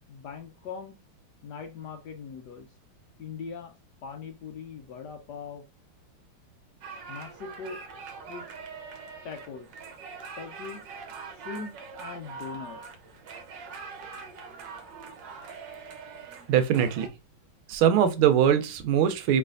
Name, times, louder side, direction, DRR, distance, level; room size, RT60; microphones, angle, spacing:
voice 1, 0.1-1.0 1.4-2.7 3.2-3.7 4.0-5.6 7.1-8.5 9.2-9.7 10.4-10.8 11.4-11.7 12.0-12.8, left 5 dB, 70° left, 1.1 m, -40 dB
sound 1, 6.8-17.1, right 5 dB, 65° right, 1.4 m, -43 dB
voice 2, 16.5-17.1 17.7-19.4, right 9 dB, 85° right, 1.6 m, -22 dB
4.7 x 3.2 x 2.5 m
omnidirectional pair, 2.3 m